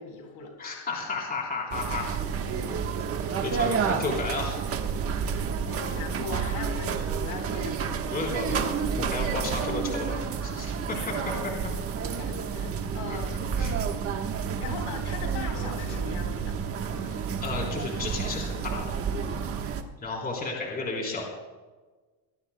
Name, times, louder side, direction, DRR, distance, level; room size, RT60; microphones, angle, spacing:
voice 1, 0.0-0.7 2.3-2.9 3.6-4.1 5.7-8.0 9.5-9.6 10.9-11.3 12.0-13.4 14.0-16.6, left 4 dB, 45° left, 3 dB, 4.1 m, -40 dB
voice 2, 0.6-2.1 3.4-4.7 8.1-10.1 10.4-11.1 11.4-11.7 13.6-14.0 17.0-19.0 20.0-21.2, left 3 dB, 20° left, -2 dB, 3.7 m, -33 dB
Suzhou Shan Tang Old Town Street, 1.7-19.8, right 6 dB, 30° right, 1.3 m, -30 dB
25.5 x 19.0 x 2.2 m, 1.3 s
cardioid pair, 160°, 46 cm